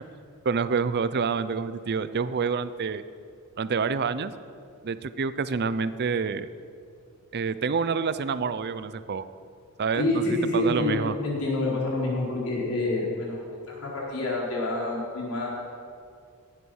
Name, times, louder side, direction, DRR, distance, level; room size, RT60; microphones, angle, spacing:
voice 1, 0.4-3.0 3.6-4.3 4.8-6.5 7.3-9.2 9.8-11.1, right 5 dB, 50° right, 14 dB, 0.6 m, -27 dB
voice 2, 10.0-13.4 13.7-15.5, left 2 dB, 85° left, -4 dB, 4.3 m, -27 dB
16.5 x 8.4 x 6.4 m, 2.3 s
head